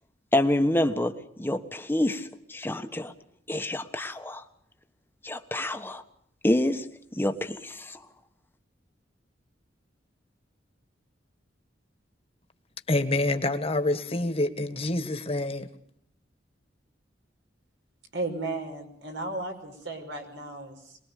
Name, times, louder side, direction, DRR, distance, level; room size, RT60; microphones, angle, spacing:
voice 1, 0.3-3.1 3.5-4.4 5.2-6.0 6.4-6.8 7.1-8.0, left 1 dB, 10° left, 1.3 m, -27 dB
voice 2, 12.9-15.7, left 2 dB, 30° left, 1.7 m, -27 dB
voice 3, 18.1-21.0, right 2 dB, 70° right, 5.5 m, -35 dB
24.0 x 21.0 x 6.7 m
head